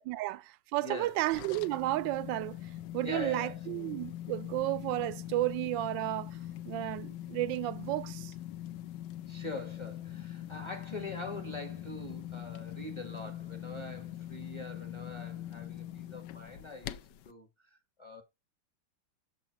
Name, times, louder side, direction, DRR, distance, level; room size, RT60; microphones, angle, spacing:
voice 1, 0.1-2.6 2.9-6.3 6.6-8.3, right 16 dB, 75° right, 1.2 m, -32 dB
voice 2, 0.8-1.1 3.0-3.6 9.3-18.2, left 2 dB, 20° left, 1.1 m, -43 dB
sound 1, 1.0-17.3, left 12 dB, 75° left, 1.1 m, -43 dB
7.1 x 3.8 x 4.6 m
omnidirectional pair, 2.2 m